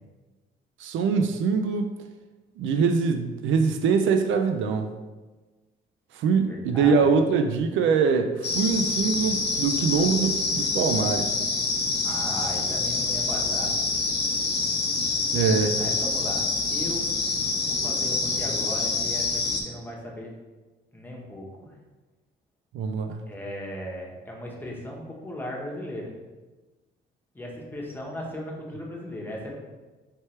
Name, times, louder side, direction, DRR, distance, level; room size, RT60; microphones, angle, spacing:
voice 1, 0.8-1.9 2.6-4.9 6.1-11.4 15.3-15.8 22.7-23.2, right 5 dB, 75° right, 7 dB, 0.4 m, -23 dB
voice 2, 6.5-7.2 12.0-13.7 15.8-16.4 16.7-17.1 17.6-20.3 20.9-21.7 23.3-26.2 27.3-29.6, left 1 dB, 10° left, -3 dB, 1.1 m, -37 dB
sound 1, 8.4-19.6, left 3 dB, 55° left, 0.9 m, -26 dB
4.3 x 3.3 x 3.2 m, 1.2 s
cardioid pair, 90°, 20 cm